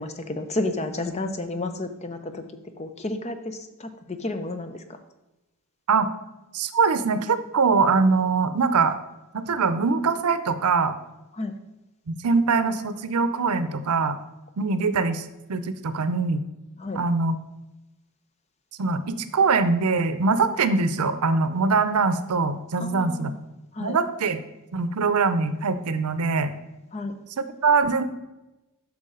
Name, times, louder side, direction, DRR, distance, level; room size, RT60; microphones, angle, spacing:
voice 1, 0.0-2.4 2.8-5.0 11.3-11.5 16.8-17.0 22.8-23.4 23.7-24.0 26.9-27.1, left 2 dB, 30° left, 8 dB, 0.6 m, -31 dB
voice 2, 6.5-9.0 9.3-10.9 12.1-14.2 14.6-16.5 16.9-17.4 18.8-23.3 23.8-24.4 24.7-26.5 27.4-28.0, right 4 dB, 85° right, 12 dB, 0.6 m, -23 dB
8.2 x 5.9 x 3.8 m, 1.0 s
head